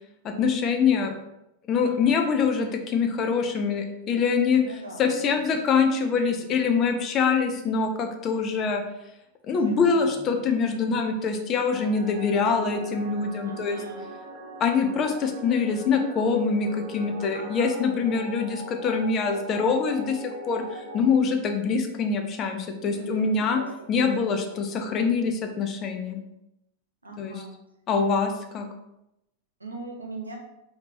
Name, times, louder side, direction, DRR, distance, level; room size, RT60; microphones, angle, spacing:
voice 1, 0.2-1.1 1.7-8.8 9.4-13.8 14.6-23.6 23.9-26.2 27.2-27.4 27.9-28.7, left 5 dB, 30° left, 5 dB, 0.6 m, -24 dB
voice 2, 1.8-2.2 4.5-5.5 6.1-6.6 9.5-11.1 13.4-14.1 17.3-17.8 22.9-24.2 24.5-25.0 27.0-27.6 29.6-30.4, right 2 dB, 80° right, 0 dB, 0.9 m, -42 dB
sound 1, 11.7-21.0, equal, 20° right, 1.5 m, -40 dB
5.1 x 2.9 x 2.9 m, 0.87 s
figure-of-eight pair, 90°, 0 cm